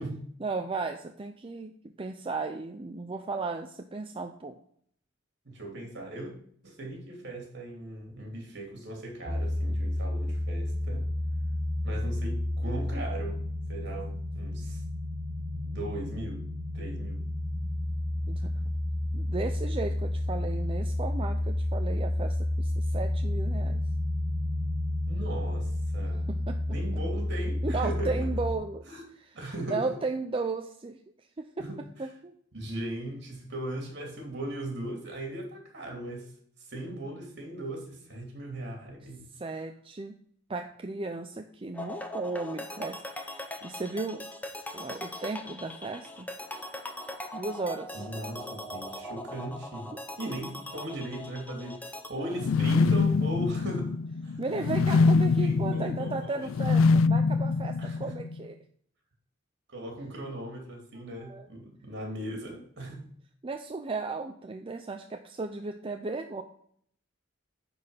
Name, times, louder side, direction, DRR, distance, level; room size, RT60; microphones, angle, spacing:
voice 1, 0.4-4.6 18.3-18.7 19.1-23.8 26.3-27.0 27.6-28.8 29.1-29.4 29.7-31.0 31.4-31.5 32.0-32.4 39.4-40.2 40.5-44.3 44.7-46.3 47.3-48.1 49.9-50.0 50.3-50.4 52.2-52.5 54.4-58.6 61.1-61.5 63.4-66.4, right 3 dB, 25° right, 5 dB, 0.5 m, -35 dB
voice 2, 5.4-6.3 6.6-11.1 11.8-14.8 15.5-16.5 16.7-17.2 25.1-26.3 26.7-28.3 28.8-29.0 29.3-29.9 31.6-31.8 32.5-36.3 36.7-39.3 47.9-49.9 50.2-51.8 52.1-54.0 54.2-54.4 54.9-56.5 57.8-58.1 59.7-63.1, right 1 dB, 60° right, 1 dB, 2.8 m, -38 dB
sound 1, 9.2-28.5, left 1 dB, 85° right, 1.4 m, -31 dB
sound 2, 41.7-52.1, left 1 dB, 10° left, 0.8 m, -40 dB
sound 3, 52.3-58.4, left 4 dB, 90° left, 0.4 m, -24 dB
9.9 x 4.3 x 5.6 m, 0.63 s
head